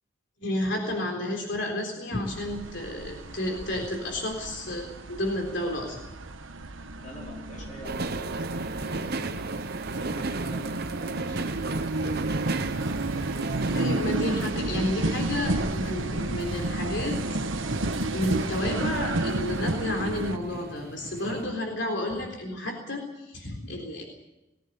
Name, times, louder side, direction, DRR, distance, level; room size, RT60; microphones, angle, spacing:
voice 1, 0.4-6.0 13.7-17.2 17.5-17.7 18.1-24.0, left 1 dB, 60° left, 2 dB, 3.8 m, -31 dB
sound 1, 2.2-20.4, right 2 dB, 75° right, 1.3 m, -31 dB
voice 2, 6.9-9.5 9.9-11.9, left 1 dB, 35° left, -1 dB, 4.9 m, -45 dB
sound 2, 7.8-21.4, right 3 dB, 50° right, 0.9 m, -35 dB
20.0 x 16.5 x 8.4 m, 0.96 s
head